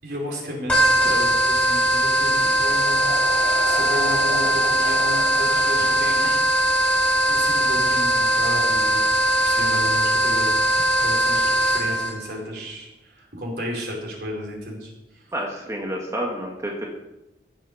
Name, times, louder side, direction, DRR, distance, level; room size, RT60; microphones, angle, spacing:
voice 1, 0.0-3.0 3.7-6.4 7.3-15.2, equal, 65° right, -1 dB, 4.5 m, -33 dB
sound 1, 0.7-12.1, right 1 dB, 10° left, 5.2 m, -20 dB
sound 2, 2.0-9.6, right 1 dB, 90° right, 5.4 m, -37 dB
voice 2, 15.3-16.9, right 1 dB, 20° right, -1 dB, 1.6 m, -29 dB
15.5 x 7.1 x 6.7 m, 0.96 s
head